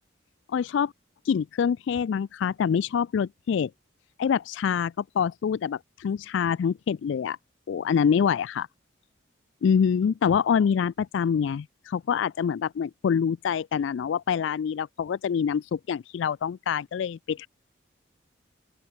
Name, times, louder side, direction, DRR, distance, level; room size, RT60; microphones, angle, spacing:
voice 1, 0.5-0.9 1.3-3.7 4.2-7.4 7.7-8.7 9.6-17.5, left 7 dB, 65° left, 0.3 m, -25 dB
open air
head